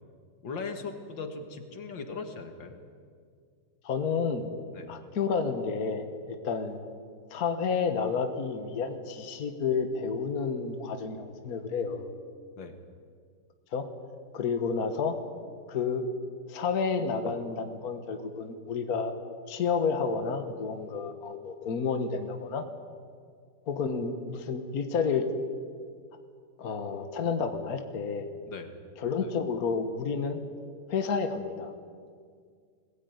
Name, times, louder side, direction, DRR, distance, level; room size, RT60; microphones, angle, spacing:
voice 1, 0.4-2.8 4.7-4.9 12.6-12.8 28.5-28.7, left 4 dB, 80° left, 6 dB, 2.4 m, -39 dB
voice 2, 3.8-4.5 4.9-6.8 7.3-12.1 13.7-13.9 14.3-15.2 15.7-16.0 16.5-19.1 19.5-22.6 23.7-25.2 26.6-28.3 29.0-30.4 30.9-31.7, left 5 dB, 55° left, 7 dB, 1.7 m, -30 dB
21.0 x 17.0 x 9.4 m, 2.1 s
omnidirectional pair, 2.1 m